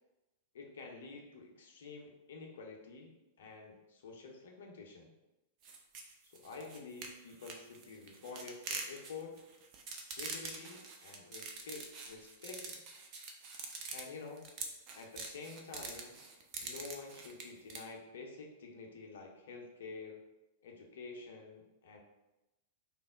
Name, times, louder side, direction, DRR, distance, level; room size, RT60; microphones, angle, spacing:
voice 1, 0.5-5.1 6.4-9.4 10.1-12.8 13.9-14.4 14.9-16.1 16.6-20.2 20.6-22.0, left 4 dB, 60° left, 1 dB, 0.6 m, -49 dB
sound 1, 5.6-17.8, right 4 dB, 40° right, 0.5 m, -45 dB
3.1 x 2.0 x 3.4 m, 0.97 s
figure-of-eight pair, 95°, 0 cm